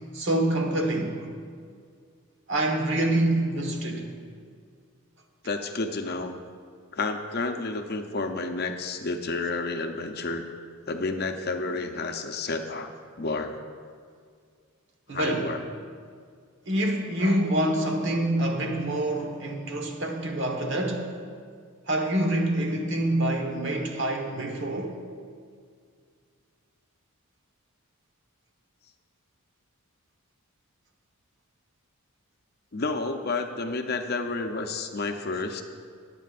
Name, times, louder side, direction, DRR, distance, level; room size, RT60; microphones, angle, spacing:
voice 1, 0.1-1.1 2.5-4.1 15.1-15.5 16.7-21.1 21.9-25.0, right 1 dB, 55° right, 2 dB, 1.3 m, -26 dB
voice 2, 5.4-6.4 6.9-10.4 10.9-12.9 13.2-13.6 15.1-15.6 17.2-17.3 32.7-35.6, left 3 dB, 45° left, 5 dB, 0.6 m, -30 dB
20.5 x 8.4 x 2.5 m, 2.1 s
head